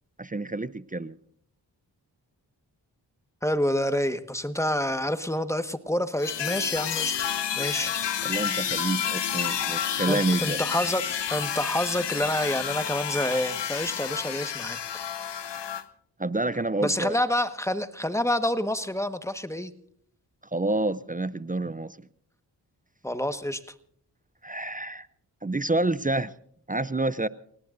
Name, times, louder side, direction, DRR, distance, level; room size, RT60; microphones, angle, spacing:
voice 1, 0.2-1.2 8.2-10.6 16.2-17.2 20.5-22.0 24.4-25.1 25.4-26.3 26.7-27.3, right 2 dB, 20° right, 17 dB, 0.6 m, -28 dB
voice 2, 3.4-7.2 7.5-8.0 10.0-14.9 15.2-15.3 16.8-19.7 23.0-23.6, left 1 dB, 5° left, 10 dB, 1.5 m, -28 dB
sound 1, 6.2-15.8, left 9 dB, 70° left, 1.0 m, -30 dB
29.0 x 18.0 x 2.6 m, 0.67 s
cardioid pair, 40°, 44 cm